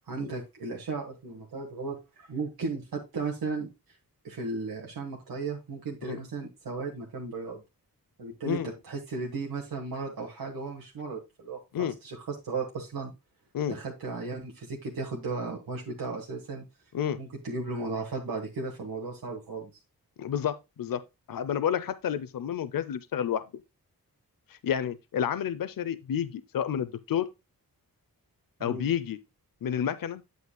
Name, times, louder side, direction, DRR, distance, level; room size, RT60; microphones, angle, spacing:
voice 1, 0.1-3.7 4.2-7.6 8.2-13.1 13.7-16.6 17.2-19.7 28.6-28.9, right 4 dB, 80° right, 1.6 m, -35 dB
voice 2, 20.2-23.4 24.5-27.3 28.6-29.2 29.6-30.2, left 9 dB, 65° left, 0.6 m, -30 dB
8.3 x 7.8 x 2.2 m
wide cardioid pair, 90°, 36 cm